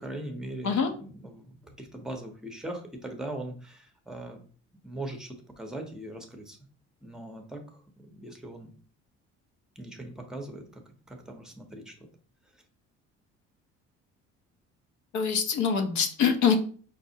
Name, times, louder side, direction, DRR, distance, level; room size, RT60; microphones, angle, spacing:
voice 1, 0.0-4.4 4.8-6.6 7.0-7.6 8.0-8.7 9.8-10.8 11.1-11.9, right 1 dB, ahead, 4 dB, 0.7 m, -40 dB
voice 2, 15.1-16.5, left 6 dB, 70° left, 5 dB, 0.7 m, -24 dB
5.0 x 2.0 x 2.7 m, 0.42 s
cardioid pair, 100°, 30 cm